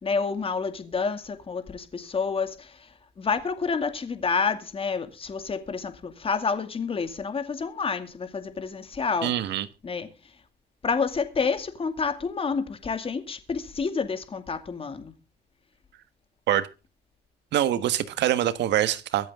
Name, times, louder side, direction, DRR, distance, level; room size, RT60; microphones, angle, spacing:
voice 1, 0.0-2.5 3.2-9.3 9.8-10.1 10.8-15.1, left 5 dB, 30° left, 2.3 m, -29 dB
voice 2, 9.2-9.7 16.5-16.7 17.5-19.3, right 12 dB, 80° right, 1.4 m, -24 dB
23.5 x 8.0 x 3.6 m
cardioid pair, 120°, 18 cm